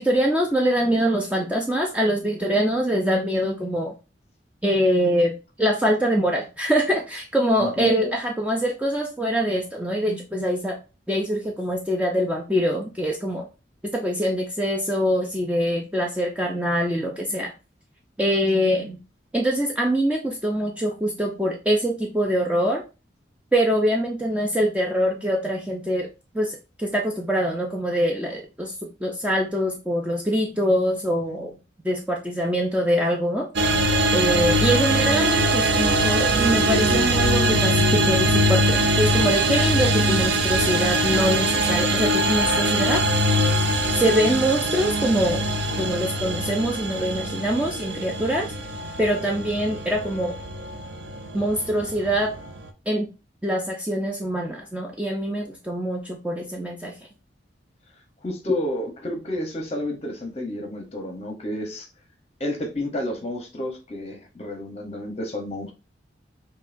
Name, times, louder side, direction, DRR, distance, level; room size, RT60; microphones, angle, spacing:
voice 1, 0.0-4.0 4.6-10.8 11.1-13.5 13.8-17.5 18.2-19.0 19.3-22.8 23.5-26.1 26.3-28.7 29.0-31.5 31.8-33.5 34.1-43.0 44.0-45.4 45.8-48.5 49.0-50.4 51.3-52.3 52.9-53.1 53.4-56.9, equal, 5° right, 0.4 m, -24 dB
voice 2, 7.6-7.9 58.2-61.9 62.4-65.7, left 1 dB, 35° left, 0.8 m, -31 dB
sound 1, 33.6-52.7, right 1 dB, 70° right, 0.5 m, -22 dB
5.5 x 2.2 x 2.5 m
head